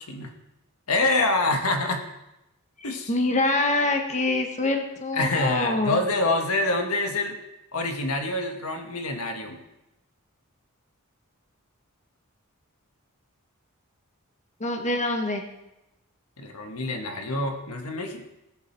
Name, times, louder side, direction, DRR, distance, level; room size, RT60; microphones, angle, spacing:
voice 1, 0.9-2.0 2.8-3.1 5.1-7.4 7.7-9.6 16.4-18.2, left 2 dB, 80° left, 4 dB, 1.6 m, -26 dB
voice 2, 3.1-6.0 14.6-15.4, left 2 dB, 35° left, 4 dB, 1.3 m, -25 dB
18.0 x 7.3 x 4.5 m, 0.93 s
head